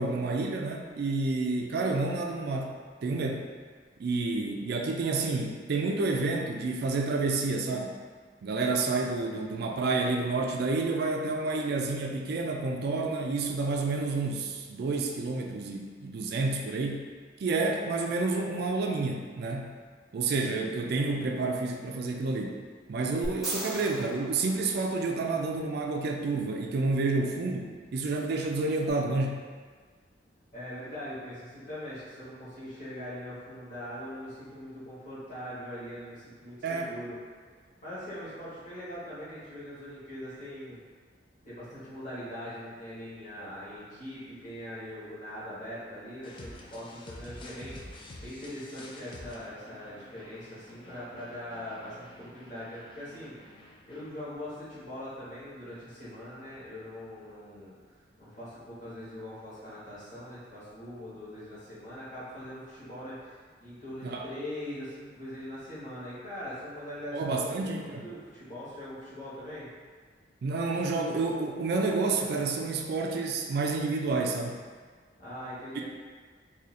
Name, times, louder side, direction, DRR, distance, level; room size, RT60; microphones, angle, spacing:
voice 1, 0.0-2.7 3.0-3.5 4.0-8.0 8.4-17.1 17.4-19.7 20.1-22.6 22.9-29.4 36.6-36.9 64.0-64.3 67.1-68.1 70.4-74.6, right 3 dB, 55° right, 1 dB, 0.3 m, -29 dB
sound 1, 23.2-25.5 28.9-29.0, equal, ahead, 0.8 m, -39 dB
voice 2, 30.5-37.2 37.8-40.8 41.4-69.7 75.2-75.8, left 1 dB, 40° left, -10 dB, 1.3 m, -42 dB
sound 2, 46.2-54.1, left 2 dB, 25° left, 0.3 m, -49 dB
2.7 x 2.6 x 4.1 m, 1.5 s
head